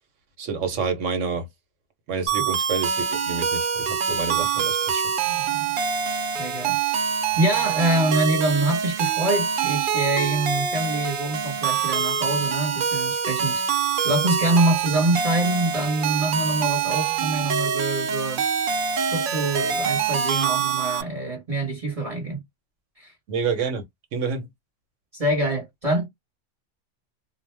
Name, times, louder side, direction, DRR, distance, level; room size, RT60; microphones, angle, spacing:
voice 1, 0.4-1.5 2.1-5.0 23.3-23.8 24.1-24.5, right 5 dB, 85° right, 1.2 m, -28 dB
sound 1, 2.3-21.0, right 6 dB, 60° right, 0.6 m, -25 dB
voice 2, 5.3-5.6 6.4-7.1 7.4-13.6 14.0-18.4 19.1-22.4 23.0-23.1 25.1-26.1, right 2 dB, 30° right, 1.1 m, -25 dB
2.4 x 2.1 x 3.2 m
omnidirectional pair, 1.2 m